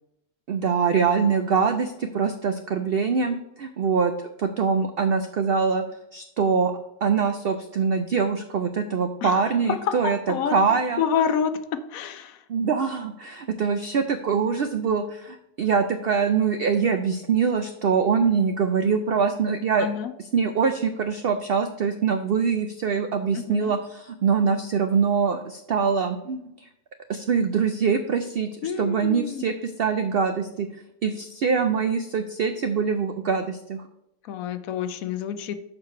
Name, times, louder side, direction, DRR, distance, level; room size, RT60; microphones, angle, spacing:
voice 1, 0.5-4.1 4.4-5.8 6.1-6.7 7.0-10.2 10.5-11.0 12.5-19.9 20.3-26.7 27.1-30.7 31.0-33.8, right 6 dB, 85° right, 8 dB, 0.5 m, -24 dB
voice 2, 9.7-12.4 19.8-20.1 23.3-23.8 28.6-29.4 34.2-35.6, left 7 dB, 70° left, 10 dB, 1.0 m, -28 dB
6.5 x 4.8 x 5.8 m, 0.83 s
omnidirectional pair, 1.6 m